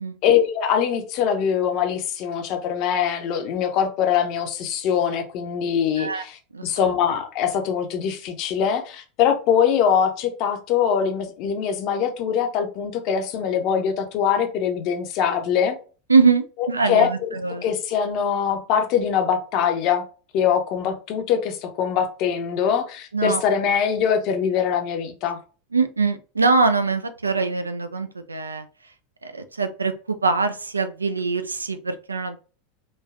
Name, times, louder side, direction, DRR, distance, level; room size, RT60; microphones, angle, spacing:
voice 1, 0.2-15.8 16.8-17.3 17.6-20.0 20.3-25.4, left 8 dB, 45° left, 5 dB, 0.6 m, -23 dB
voice 2, 6.5-6.9 16.1-17.6 23.1-23.4 25.7-28.7 29.2-32.4, right 4 dB, 85° right, 9 dB, 0.3 m, -23 dB
3.2 x 2.2 x 2.3 m, 0.37 s
figure-of-eight pair, 85°, 0 cm